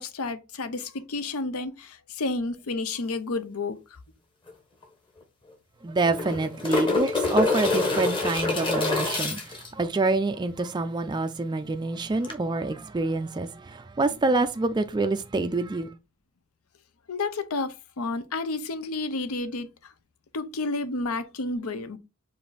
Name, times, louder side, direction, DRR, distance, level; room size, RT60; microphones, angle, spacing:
voice 1, 0.0-4.0 17.1-19.9 20.3-22.0, left 3 dB, 70° left, 0.6 m, -31 dB
sound 1, 4.5-4.6 4.8-4.9 6.0-9.7 12.2-12.3, left 3 dB, 20° left, 1.1 m, -26 dB
voice 2, 5.8-15.9, right 3 dB, 20° right, 0.3 m, -27 dB
5.0 x 2.6 x 3.9 m
head